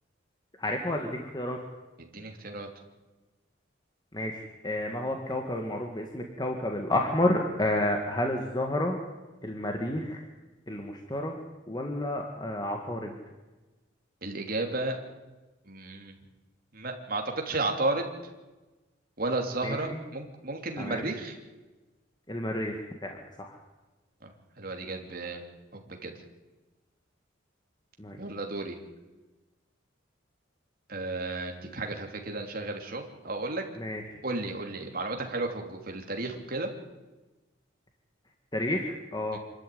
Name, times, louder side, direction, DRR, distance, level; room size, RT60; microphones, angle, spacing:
voice 1, 0.6-1.6 4.1-9.0 9.4-10.2 10.7-11.4 11.7-13.2 19.6-20.0 20.8-21.1 22.3-23.6 28.0-28.2 33.8-34.2 38.5-39.4, left 1 dB, 20° left, 2 dB, 1.8 m, -30 dB
voice 2, 2.0-2.7 14.2-15.0 15.7-16.2 16.7-18.1 19.2-21.3 24.2-24.3 24.6-25.4 25.7-26.2 28.2-28.8 30.9-33.6 34.2-36.7 39.3-39.4, right 2 dB, 45° right, 3 dB, 3.1 m, -33 dB
25.5 x 13.0 x 9.4 m, 1.1 s
head